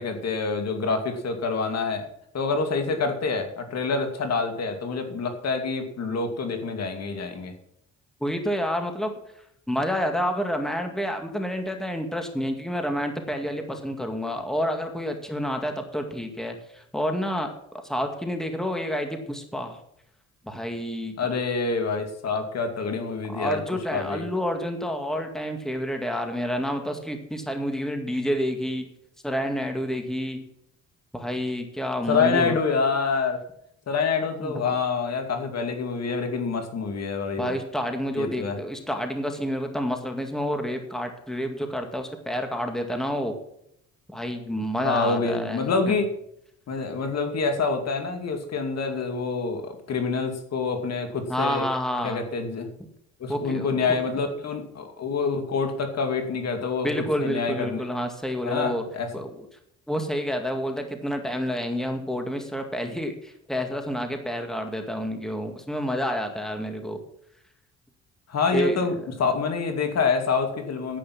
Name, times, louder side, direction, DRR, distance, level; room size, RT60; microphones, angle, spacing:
voice 1, 0.0-2.1 2.3-7.5 21.2-23.6 23.9-24.2 32.1-33.4 33.9-37.6 38.2-38.6 44.8-46.1 46.7-51.6 52.0-52.7 53.2-56.9 57.2-57.8 58.4-59.1 68.3-71.0, left 4 dB, 60° left, 6 dB, 2.4 m, -26 dB
voice 2, 8.2-9.1 9.7-17.5 17.8-19.8 20.5-21.2 23.3-28.9 29.2-30.4 31.1-32.5 34.4-34.6 37.4-43.3 44.1-45.7 51.3-52.2 53.3-54.0 56.8-58.8 59.1-59.5 59.9-67.0 68.5-68.8, equal, ahead, 5 dB, 2.0 m, -29 dB
10.5 x 8.6 x 6.0 m, 0.75 s
cardioid pair, 90°, 30 cm